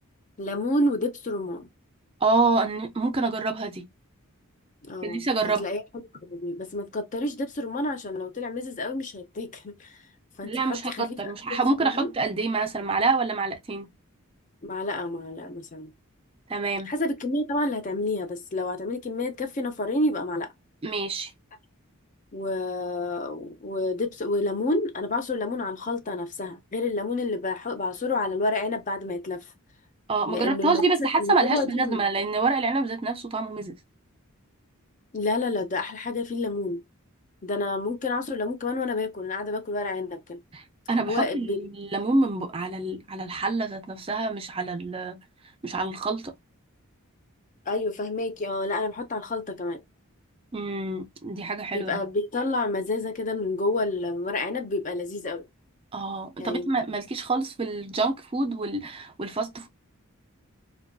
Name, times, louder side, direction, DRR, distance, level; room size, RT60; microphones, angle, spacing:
voice 1, 0.4-1.7 4.9-5.8 6.2-10.0 10.4-12.1 14.6-15.9 16.9-20.5 22.3-29.5 30.3-30.8 31.2-32.0 35.1-36.8 37.4-40.4 41.1-41.7 47.7-49.8 51.7-55.4 56.4-56.7, left 2 dB, 35° left, 0.5 m, -29 dB
voice 2, 2.2-3.8 5.0-5.7 10.4-13.9 16.5-16.9 20.8-21.3 30.1-33.7 40.5-45.2 45.6-46.3 50.5-52.0 55.9-59.7, right 3 dB, 25° right, 0.4 m, -27 dB
2.5 x 2.2 x 2.2 m
head